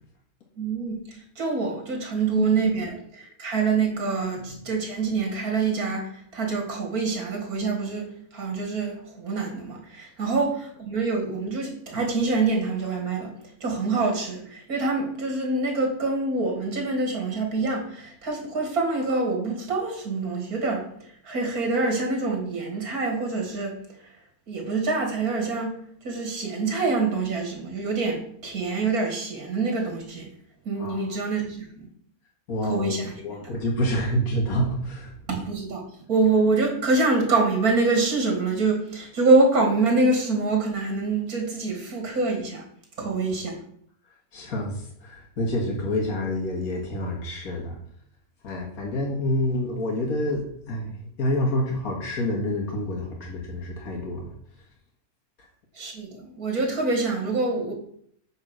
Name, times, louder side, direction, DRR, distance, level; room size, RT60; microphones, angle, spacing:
voice 1, 0.6-13.3 13.6-24.1 24.5-30.3 30.6-31.9 32.6-33.2 35.3-42.6 43.0-43.5 55.7-57.7, right 3 dB, 80° right, 1 dB, 2.6 m, -25 dB
voice 2, 2.3-2.7 4.3-4.6 30.8-31.0 32.5-33.0 33.2-35.1 43.0-43.1 44.3-47.8 48.4-54.3, left 1 dB, 80° left, 0 dB, 2.2 m, -28 dB
8.9 x 4.4 x 6.3 m, 0.64 s
omnidirectional pair, 1.5 m